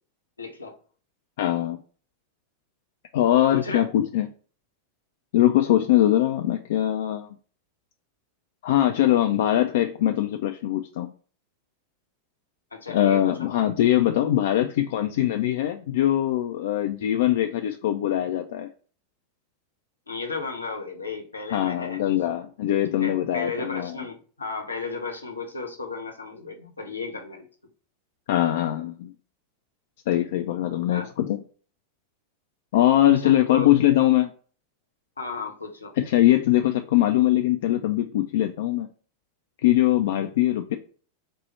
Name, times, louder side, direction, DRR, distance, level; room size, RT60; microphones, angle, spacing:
voice 1, 0.4-0.8 3.5-3.9 12.7-13.5 20.1-22.0 22.9-27.5 30.9-31.1 33.2-33.7 35.2-35.9, left 4 dB, 80° left, 0.8 m, -34 dB
voice 2, 1.4-1.8 3.1-4.3 5.3-7.3 8.6-11.1 12.9-18.7 21.5-23.9 28.3-29.1 30.1-31.4 32.7-34.3 36.0-38.9 39.6-40.8, left 13 dB, 55° left, 0.3 m, -22 dB
4.3 x 2.0 x 4.4 m
figure-of-eight pair, 90°, 0 cm